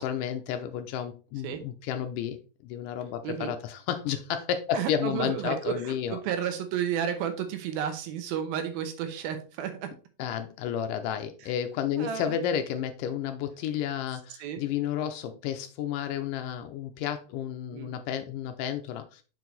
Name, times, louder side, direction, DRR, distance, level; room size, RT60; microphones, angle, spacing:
voice 1, 0.0-6.2 10.2-19.2, left 9 dB, 85° left, 1.9 m, -32 dB
voice 2, 3.2-3.5 4.7-9.9 12.0-12.4 14.4-14.6 17.7-17.9, right 9 dB, 80° right, 2.7 m, -32 dB
6.5 x 4.7 x 3.9 m
omnidirectional pair, 4.3 m